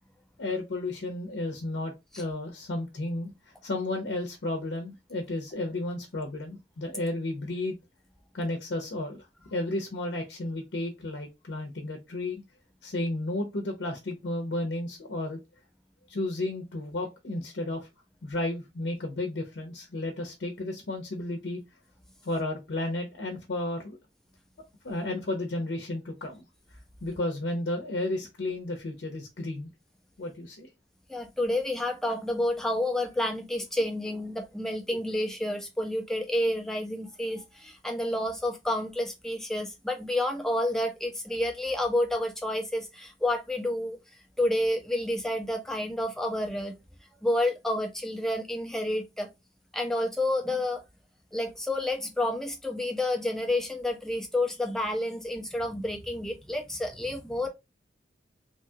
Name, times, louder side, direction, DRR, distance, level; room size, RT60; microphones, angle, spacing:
voice 1, 0.4-7.8 8.3-12.4 12.8-15.4 16.1-17.9 18.2-21.6 22.2-24.0 24.8-29.7 30.2-30.7, left 2 dB, 85° left, 0.6 m, -33 dB
voice 2, 31.1-44.0 44.4-46.7 47.2-49.3 49.7-50.8 51.3-57.5, left 1 dB, 5° left, 0.4 m, -29 dB
2.9 x 2.2 x 2.7 m
head